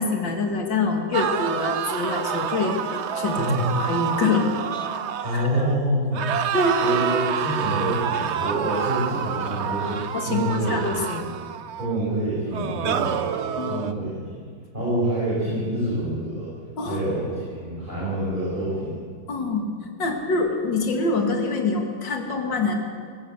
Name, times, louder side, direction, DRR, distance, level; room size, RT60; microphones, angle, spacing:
voice 1, 0.0-2.8 3.2-3.5 3.8-4.5 5.3-5.5 6.5-6.8 10.1-11.2 13.6-13.8 16.8-17.0 19.3-22.7, left 3 dB, 65° left, 3 dB, 2.9 m, -25 dB
sound 1, 1.1-5.8 6.1-12.0 12.5-13.9, right 8 dB, 85° right, 0.6 m, -28 dB
voice 2, 3.4-3.7 5.2-6.3 6.8-11.3 11.8-13.1 13.6-14.4 14.7-16.5 16.8-19.0, right 1 dB, 25° right, -9 dB, 6.3 m, -26 dB
20.0 x 16.0 x 8.1 m, 2.1 s
omnidirectional pair, 2.2 m